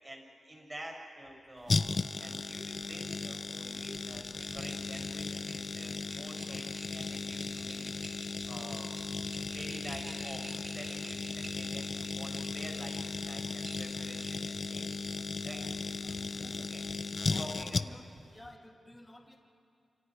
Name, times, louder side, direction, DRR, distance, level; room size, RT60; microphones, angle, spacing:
voice 1, 0.0-1.8 2.2-9.0 9.5-15.0 15.4-15.6 15.9-16.8 17.4-18.3, right 1 dB, 20° right, 0 dB, 6.6 m, -48 dB
sound 1, 1.7-18.2 18.4-18.5, left 4 dB, 40° left, 0.6 m, -36 dB
sound 2, 4.1-13.2 13.6-14.6, right 2 dB, 40° right, 5.5 m, -51 dB
voice 2, 7.6-8.5 15.5-15.7 16.0-16.6 17.3-18.0 18.3-19.4, left 1 dB, 10° left, -1 dB, 2.8 m, -55 dB
28.0 x 27.0 x 4.9 m, 2.4 s
wide cardioid pair, 130°, 0 cm